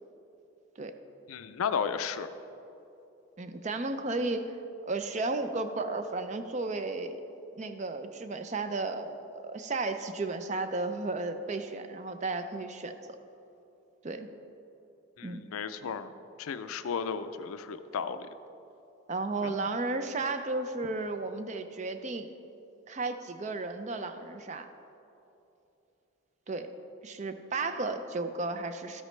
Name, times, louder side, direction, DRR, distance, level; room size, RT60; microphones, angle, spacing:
voice 1, 1.3-2.3 15.2-16.1 16.4-18.3 19.4-19.7, left 6 dB, 90° left, 11 dB, 0.4 m, -34 dB
voice 2, 3.4-4.6 4.8-7.2 7.5-13.2 14.0-14.3 15.2-15.4 19.1-22.3 22.9-24.7 26.5-26.7 27.0-29.0, right 3 dB, 35° right, 8 dB, 0.4 m, -34 dB
13.0 x 8.1 x 3.2 m, 2.9 s
head